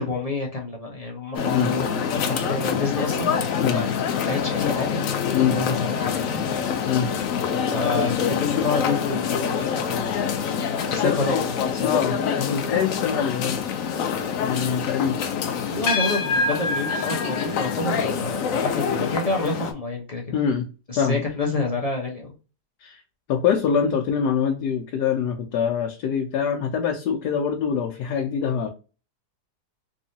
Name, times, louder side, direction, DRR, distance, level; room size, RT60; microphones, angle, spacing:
voice 1, 0.0-3.4 3.7-5.1 5.5-6.4 7.7-10.1 10.8-11.9 15.7-20.4 20.9-22.3, left 3 dB, 30° left, -1 dB, 0.7 m, -28 dB
sound 1, 1.3-19.7, left 6 dB, 65° left, 0.9 m, -26 dB
voice 2, 10.8-11.3 11.8-13.6 14.4-15.2 20.3-20.7 21.0-21.2 22.8-23.0 23.3-28.7, left 7 dB, 90° left, 3 dB, 1.2 m, -24 dB
3.6 x 3.2 x 2.7 m, 0.33 s
omnidirectional pair, 1.7 m